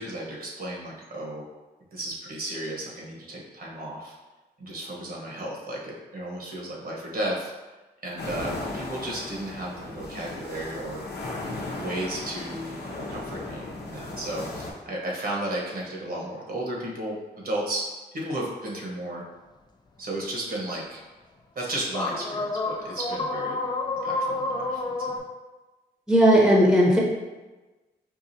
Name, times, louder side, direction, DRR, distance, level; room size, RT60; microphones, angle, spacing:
voice 1, 0.0-1.5 1.9-4.1 4.6-7.5 8.0-11.0 11.7-17.2 17.4-19.2 20.0-21.0 21.5-23.6 24.0-25.2, right 1 dB, 55° right, -3 dB, 1.0 m, -34 dB
sound 1, 8.2-14.7, left 2 dB, 70° left, 0.8 m, -36 dB
sound 2, 21.9-25.2, left 2 dB, 25° left, 0.4 m, -29 dB
voice 2, 26.1-27.0, equal, 5° right, -3 dB, 0.8 m, -17 dB
4.7 x 2.3 x 2.7 m, 1.2 s
cardioid pair, 65°, 18 cm